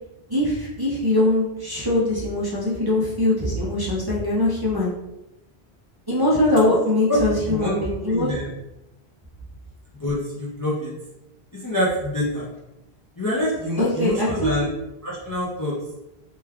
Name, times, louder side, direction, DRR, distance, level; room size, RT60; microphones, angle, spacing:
voice 1, 0.3-4.9 6.1-8.4 13.8-14.6, left 1 dB, 30° right, -7 dB, 0.5 m, -22 dB
voice 2, 8.1-8.5 10.0-10.9 11.5-12.5 13.2-14.7 15.0-15.8, left 1 dB, 30° left, -5 dB, 0.4 m, -25 dB
3.1 x 2.3 x 3.4 m, 0.92 s
omnidirectional pair, 1.1 m